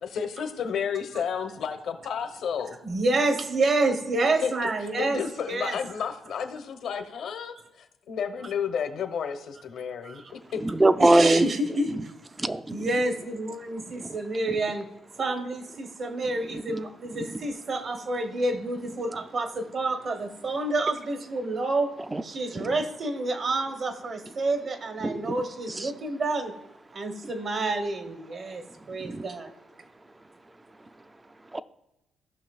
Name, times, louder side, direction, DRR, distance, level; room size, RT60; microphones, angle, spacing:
voice 1, 0.0-2.8 4.4-4.5 5.0-10.6, left 7 dB, 70° left, 7 dB, 1.0 m, -32 dB
voice 2, 2.8-5.2 5.5-5.8 10.0-10.3 11.0-12.1 12.7-14.9 15.2-21.9 22.2-26.5 26.9-29.5, right 2 dB, 55° right, 6 dB, 1.1 m, -28 dB
voice 3, 10.6-11.5 12.4-12.9 13.9-14.2 14.5-14.6 16.5-16.8 22.1-22.2 22.5-22.7 25.0-25.3 25.7-25.9 29.0-29.3 31.5-31.6, right 2 dB, 15° right, 12 dB, 0.4 m, -23 dB
16.5 x 5.8 x 2.4 m, 0.94 s
cardioid pair, 90°, 0 cm